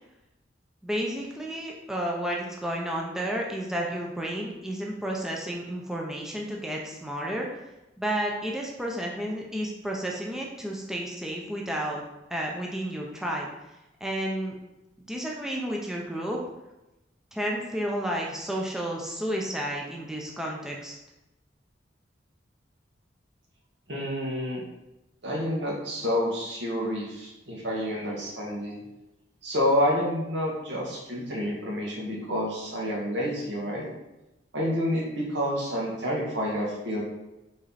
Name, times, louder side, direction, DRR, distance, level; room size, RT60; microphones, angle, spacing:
voice 1, 0.8-7.5 8.0-12.0 12.3-13.5 14.0-14.6 15.1-16.4 17.3-21.0, right 1 dB, 5° right, -2 dB, 0.7 m, -31 dB
voice 2, 23.9-24.6 25.2-28.8 29.4-33.9 34.5-37.0, equal, 70° right, -4 dB, 1.9 m, -29 dB
5.3 x 4.4 x 4.2 m, 0.97 s
head